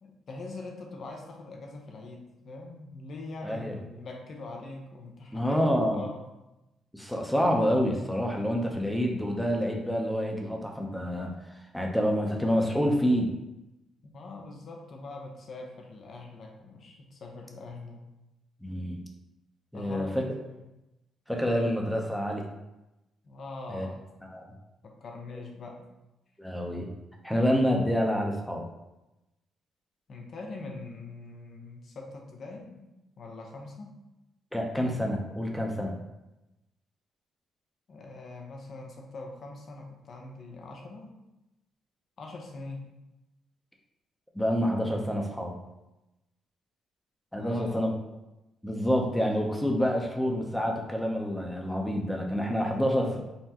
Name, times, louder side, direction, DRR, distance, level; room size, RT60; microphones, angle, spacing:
voice 1, 0.0-6.2 14.0-18.0 19.7-20.6 23.2-24.0 24.8-25.9 30.1-32.8 33.2-34.0 37.9-41.2 42.2-42.9 47.3-47.8, left 2 dB, 55° left, 1 dB, 0.8 m, -43 dB
voice 2, 3.4-3.8 5.3-6.0 6.9-11.3 11.7-13.3 18.6-19.0 19.7-20.2 21.3-22.4 23.7-23.9 24.3-24.5 26.4-26.9 27.2-28.6 34.5-35.9 44.3-45.6 47.3-47.9 48.6-53.2, equal, 5° left, 1 dB, 0.7 m, -27 dB
5.6 x 2.2 x 2.9 m, 0.96 s
cardioid pair, 80°, 0 cm